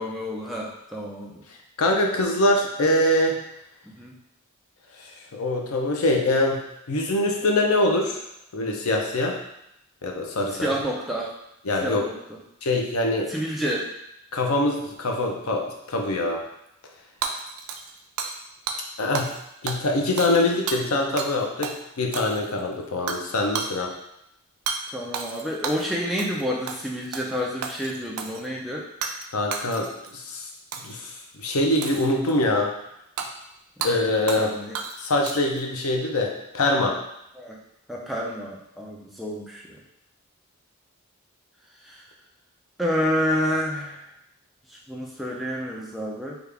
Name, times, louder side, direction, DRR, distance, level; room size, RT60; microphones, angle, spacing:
voice 1, 0.0-1.4 4.0-4.1 10.5-11.3 11.8-12.4 13.3-13.9 24.9-28.8 33.8-33.9 34.4-34.8 37.4-37.6 37.9-39.8 41.9-42.0 42.8-44.0 44.9-46.4, equal, ahead, -3 dB, 0.4 m, -29 dB
voice 2, 1.8-3.4 5.3-8.2 8.5-9.4 10.0-10.7 11.6-12.1 12.6-13.3 14.3-16.4 19.0-19.3 19.6-23.9 29.3-30.5 30.8-31.1 31.4-32.7 33.8-34.5 35.0-37.0, left 1 dB, 75° left, 1 dB, 0.6 m, -24 dB
Hammer / Shatter, 17.2-18.4 18.7-18.8 19.1-19.4 19.7-21.4 21.6-21.8 22.1-22.6 23.1-23.3 23.5-23.7 24.7-24.8 25.1-25.9 26.2-26.4 26.7-27.3 27.6-28.4 29.0-29.3 29.5-30.1 30.7-31.0 31.8-32.4 33.2-33.3 33.8-33.9 34.3-34.5 34.7-35.6, right 6 dB, 75° right, 0.4 m, -32 dB
3.5 x 2.4 x 3.3 m, 0.80 s
head